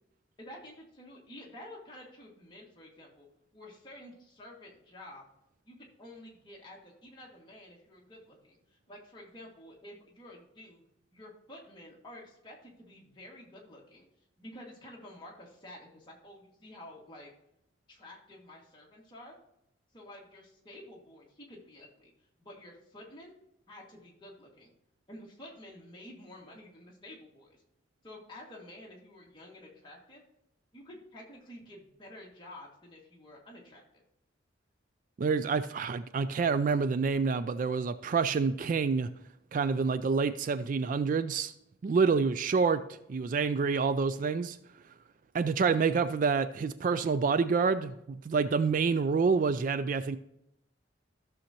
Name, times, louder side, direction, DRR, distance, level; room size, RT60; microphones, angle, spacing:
voice 1, 0.4-3.3 3.5-5.3 5.6-10.8 11.1-14.1 14.4-17.3 17.9-19.4 19.9-22.1 22.4-23.3 23.7-24.7 25.1-27.6 28.0-30.2 30.7-34.0, left 1 dB, 25° left, -3 dB, 1.9 m, -50 dB
voice 2, 35.2-39.1 39.5-41.5 41.8-42.8 43.1-44.6 45.3-50.2, right 5 dB, 45° right, 13 dB, 0.3 m, -27 dB
14.0 x 6.4 x 2.9 m, 0.83 s
head